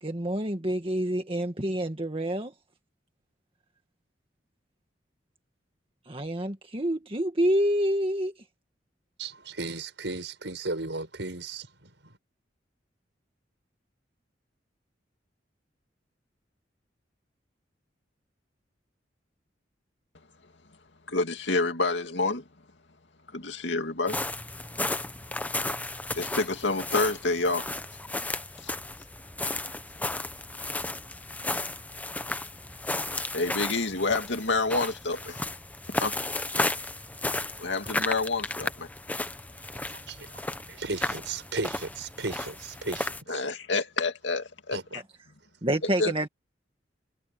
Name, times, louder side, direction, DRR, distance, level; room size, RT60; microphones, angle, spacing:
voice 1, 0.0-2.5 6.1-8.3 45.6-46.3, right 1 dB, 30° right, 1.8 m, -27 dB
voice 2, 9.2-12.1 39.9-40.3 40.7-43.4 44.7-44.8, right 3 dB, 80° right, 5.4 m, -35 dB
voice 3, 21.1-22.4 23.3-24.2 26.1-27.7 28.6-28.7 33.3-35.4 36.0-36.1 37.6-38.9 43.3-45.0 46.0-46.1, left 3 dB, 85° left, 2.4 m, -28 dB
sound 1, 24.1-43.2, left 2 dB, 10° left, 0.8 m, -34 dB
head